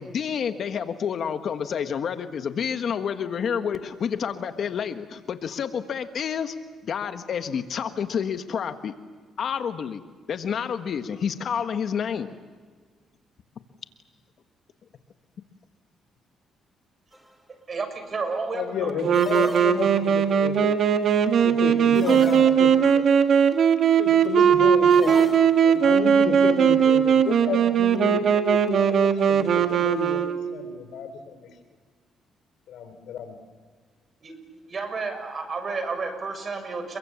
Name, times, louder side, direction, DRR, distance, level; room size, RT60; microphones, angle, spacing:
voice 1, 0.0-6.5 6.8-8.9 9.4-10.0 10.3-12.3, left 7 dB, 60° left, 8 dB, 1.5 m, -29 dB
sound 1, 17.1-17.5 19.1-20.2 21.9-23.0 24.9-25.8, equal, 5° right, 3.9 m, -40 dB
voice 2, 17.7-19.1 19.6-19.7 34.2-34.3 34.7-37.0, right 4 dB, 40° right, 8 dB, 6.6 m, -31 dB
voice 3, 18.5-21.0 21.4-23.0 24.0-25.2 25.6-31.5 32.7-33.4, left 7 dB, 80° left, 10 dB, 3.6 m, -32 dB
Wind instrument woodwind instrument, 19.0-30.7, right 7 dB, 65° right, 1.7 m, -19 dB
29.5 x 23.5 x 7.2 m, 1.5 s
cardioid pair, 90°, 0 cm